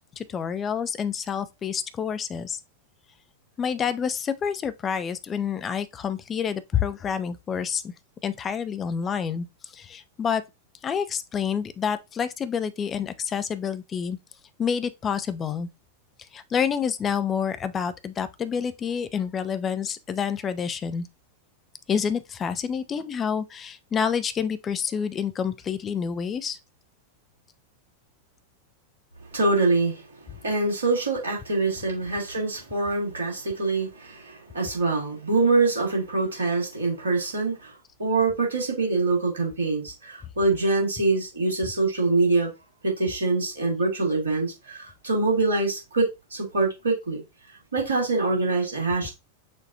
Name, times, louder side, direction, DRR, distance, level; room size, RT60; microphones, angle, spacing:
voice 1, 0.0-2.6 3.6-7.9 8.2-9.5 9.7-10.4 10.8-14.2 14.6-15.7 16.3-21.1 21.9-26.6, left 7 dB, 25° left, 0.5 m, -28 dB
voice 2, 29.3-30.1 30.4-37.7 38.0-42.5 42.8-47.2 47.7-49.1, right 3 dB, 70° right, 2.3 m, -24 dB
6.3 x 2.4 x 2.8 m
figure-of-eight pair, 90°, 0 cm